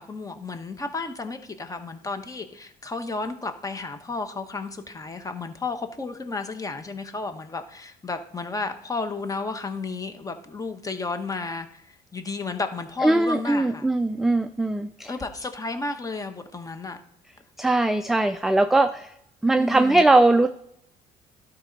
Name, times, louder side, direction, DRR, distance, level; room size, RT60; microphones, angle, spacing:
voice 1, 0.0-13.9 15.1-17.0 19.6-20.0, left 3 dB, 20° left, 1.1 m, -32 dB
voice 2, 13.0-15.1 17.6-19.1 19.4-20.5, right 2 dB, ahead, 0.4 m, -20 dB
12.0 x 4.3 x 5.2 m
cardioid pair, 110°, 17 cm